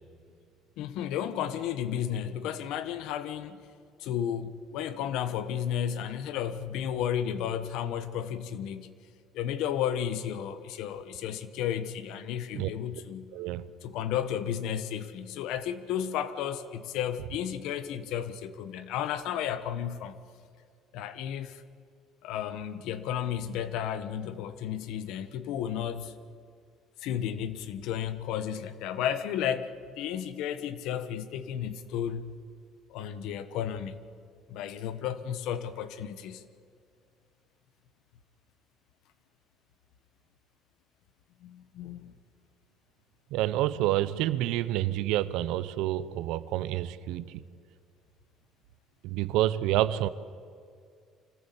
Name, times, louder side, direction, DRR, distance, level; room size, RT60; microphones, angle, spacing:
voice 1, 0.8-3.6 4.0-8.9 9.3-13.3 13.8-20.2 20.9-21.6 22.2-26.1 27.0-32.4 32.9-34.0 34.5-36.4 41.4-42.1, left 9 dB, 75° left, 1.2 m, -33 dB
voice 2, 13.3-13.7 43.3-47.4 49.0-50.1, right 14 dB, 80° right, 0.8 m, -28 dB
25.5 x 14.5 x 8.5 m
supercardioid pair, 95°, 0 cm